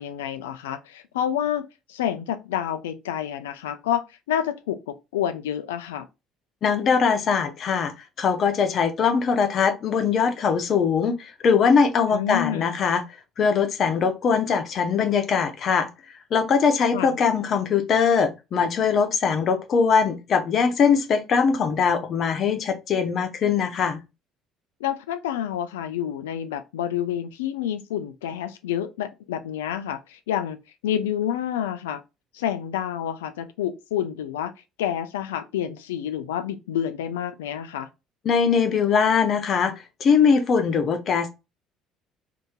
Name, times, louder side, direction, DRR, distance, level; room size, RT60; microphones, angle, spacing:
voice 1, 0.0-6.1 12.1-12.8 16.9-17.2 24.8-30.6 30.8-32.0 32.3-34.5 34.8-37.9, left 10 dB, 85° left, 0.4 m, -28 dB
voice 2, 6.6-13.0 13.4-15.9 16.3-24.0 38.2-39.7 40.0-41.3, left 6 dB, 55° left, 0.8 m, -21 dB
2.8 x 2.7 x 3.6 m
hypercardioid pair, 65°, 0 cm